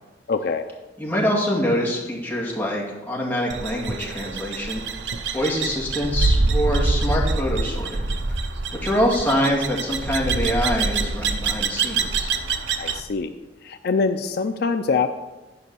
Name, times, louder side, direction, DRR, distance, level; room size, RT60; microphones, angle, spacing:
voice 1, 0.3-0.7 12.8-13.3 13.6-15.1, left 4 dB, 60° left, 8 dB, 0.5 m, -24 dB
voice 2, 1.0-4.9 5.3-8.1 8.8-12.3, equal, 10° left, -5 dB, 2.3 m, -25 dB
sound 1, 3.5-13.0, right 3 dB, 80° right, 0.7 m, -25 dB
10.5 x 5.4 x 6.9 m, 1.2 s
head